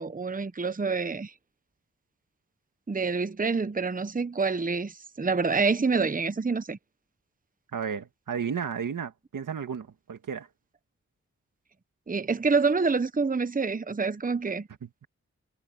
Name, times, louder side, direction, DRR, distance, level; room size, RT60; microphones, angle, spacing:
voice 1, 0.0-1.3 2.9-6.8 12.1-14.7, right 4 dB, 25° right, 1.0 m, -27 dB
voice 2, 7.7-10.5 14.8-15.1, right 7 dB, 85° right, 2.0 m, -33 dB
cardioid pair, 50°, 31 cm